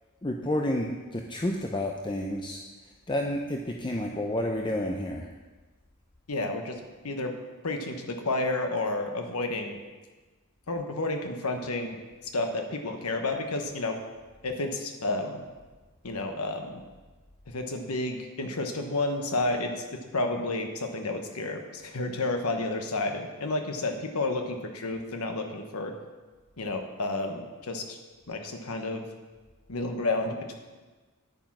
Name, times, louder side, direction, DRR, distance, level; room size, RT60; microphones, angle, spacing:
voice 1, 0.2-2.6 3.1-5.3, left 1 dB, 20° left, 2 dB, 0.6 m, -30 dB
voice 2, 6.3-7.3 7.6-9.8 10.7-12.0 12.3-14.0 14.4-15.4 16.0-16.8 17.5-19.7 20.1-25.9 26.6-28.0 28.3-29.1 29.7-30.6, left 2 dB, 85° left, 4 dB, 1.2 m, -31 dB
10.0 x 8.9 x 6.0 m, 1.3 s
head